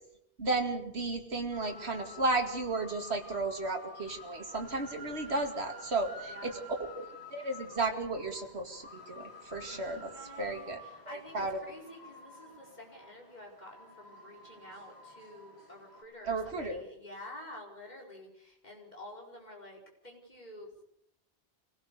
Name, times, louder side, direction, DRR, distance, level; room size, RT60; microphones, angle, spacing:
voice 1, 0.4-7.1 7.3-10.1 10.4-10.8 11.1-11.6 16.2-16.8, right 3 dB, 75° right, 4 dB, 2.7 m, -34 dB
sound 1, 1.5-16.0, left 1 dB, 75° left, 6.5 m, -50 dB
voice 2, 6.3-6.7 9.8-20.8, left 1 dB, 40° left, 0 dB, 5.1 m, -50 dB
25.5 x 17.0 x 6.8 m, 0.72 s
omnidirectional pair, 1.1 m